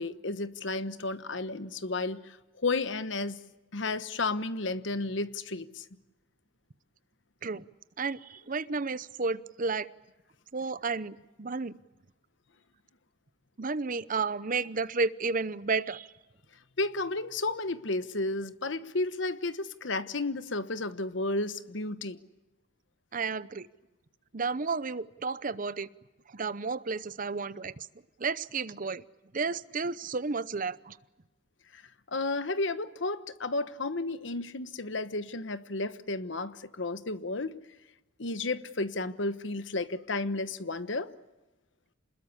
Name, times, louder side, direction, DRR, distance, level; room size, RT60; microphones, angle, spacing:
voice 1, 0.0-2.4 2.6-3.4 3.7-5.8 16.8-22.2 31.7-31.8 32.1-37.5 38.2-41.1, left 2 dB, 65° left, 1.2 m, -32 dB
voice 2, 8.0-9.9 10.5-11.8 13.6-16.1 23.1-23.7 24.3-25.9 26.3-27.9 28.2-29.0 29.3-31.0, right 4 dB, 45° right, 0.8 m, -32 dB
27.5 x 20.5 x 8.4 m
head